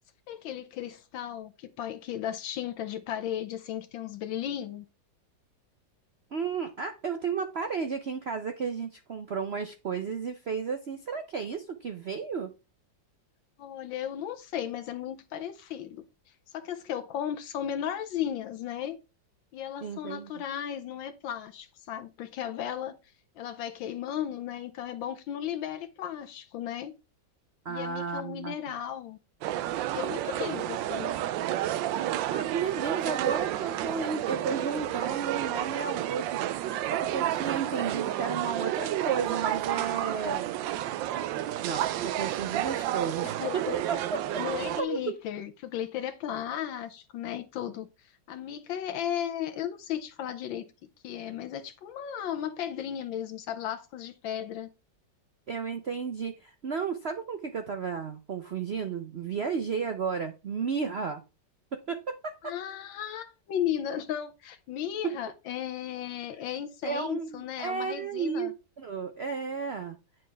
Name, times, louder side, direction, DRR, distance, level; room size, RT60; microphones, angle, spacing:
voice 1, 0.3-4.8 13.6-16.0 16.5-19.0 19.5-23.0 23.4-26.9 27.7-29.2 29.9-31.1 43.2-43.8 44.4-50.7 51.0-54.7 62.4-68.5, left 10 dB, 80° left, 1.5 m, -35 dB
voice 2, 6.3-12.5 19.8-20.3 27.6-28.5 32.3-40.5 41.6-44.2 44.8-45.2 55.5-61.2 61.7-62.5 65.0-65.2 66.8-70.0, right 6 dB, 65° right, 0.6 m, -33 dB
sound 1, 29.4-44.8, right 13 dB, 80° right, 1.3 m, -31 dB
9.3 x 6.4 x 3.4 m
omnidirectional pair, 2.1 m